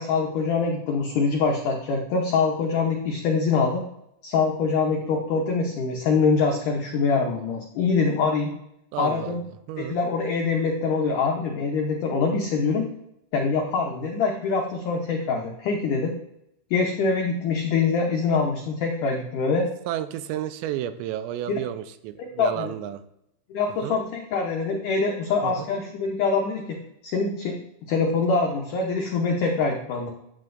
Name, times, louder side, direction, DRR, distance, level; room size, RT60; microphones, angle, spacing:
voice 1, 0.0-3.8 4.2-8.5 9.0-9.4 9.8-12.9 13.3-16.1 16.7-19.7 21.5-21.6 22.2-22.7 23.5-26.8 27.0-27.6 27.9-30.1, left 4 dB, 85° left, 0 dB, 1.8 m, -24 dB
voice 2, 8.9-9.4 9.7-10.0 19.9-23.0 23.8-24.0 25.4-25.7, right 12 dB, 85° right, 11 dB, 2.8 m, -31 dB
9.0 x 7.7 x 2.6 m, 0.78 s
omnidirectional pair, 5.0 m